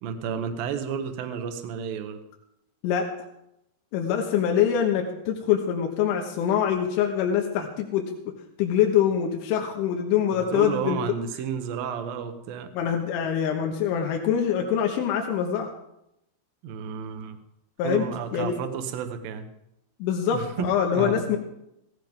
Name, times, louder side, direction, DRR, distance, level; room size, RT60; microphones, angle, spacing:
voice 1, 0.0-2.2 10.3-12.7 16.6-17.4 17.8-19.5 20.3-21.2, right 7 dB, 70° right, 7 dB, 2.3 m, -32 dB
voice 2, 3.9-8.3 8.6-11.0 12.7-15.7 17.8-18.1 18.3-18.5 20.0-21.4, left 9 dB, 90° left, 2 dB, 3.7 m, -24 dB
17.0 x 16.0 x 3.6 m, 0.82 s
omnidirectional pair, 5.5 m